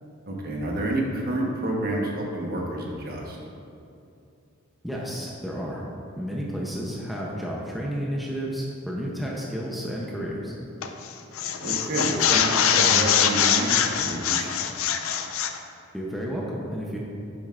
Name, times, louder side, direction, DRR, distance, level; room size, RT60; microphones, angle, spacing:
voice 1, 0.3-3.4 11.6-14.7, right 1 dB, 45° right, -2 dB, 1.2 m, -29 dB
voice 2, 4.8-5.8 6.1-10.5 15.9-17.0, equal, ahead, -4 dB, 0.7 m, -31 dB
sound 1, 10.8-11.1 11.4-15.6, left 8 dB, 70° left, 0.5 m, -23 dB
10.0 x 7.5 x 2.5 m, 2.6 s
head